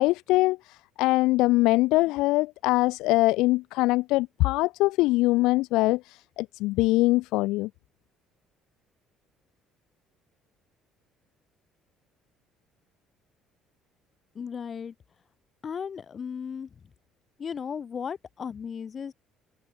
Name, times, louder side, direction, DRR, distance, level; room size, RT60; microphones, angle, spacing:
voice 1, 0.0-7.7, left 20 dB, 75° left, 0.4 m, -23 dB
voice 2, 14.4-14.9 15.6-16.7 17.4-19.1, left 7 dB, 45° left, 2.2 m, -35 dB
hypercardioid pair, 65°, 0 cm